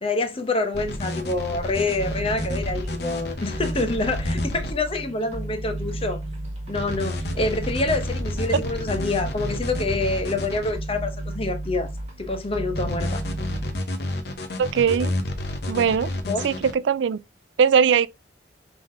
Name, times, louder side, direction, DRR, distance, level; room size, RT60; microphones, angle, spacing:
voice 1, 0.0-6.2 6.7-11.9 12.2-13.2 16.3-16.4, left 2 dB, 30° left, 0.8 m, -26 dB
sound 1, 0.7-4.7 6.7-10.7 12.7-16.7, left 1 dB, 60° left, 0.9 m, -30 dB
sound 2, 1.9-13.8, right 1 dB, 40° right, 1.6 m, -33 dB
voice 2, 14.6-15.1 15.7-16.1 16.4-17.2 17.6-18.1, right 7 dB, 80° right, 0.3 m, -20 dB
5.4 x 3.6 x 2.6 m
head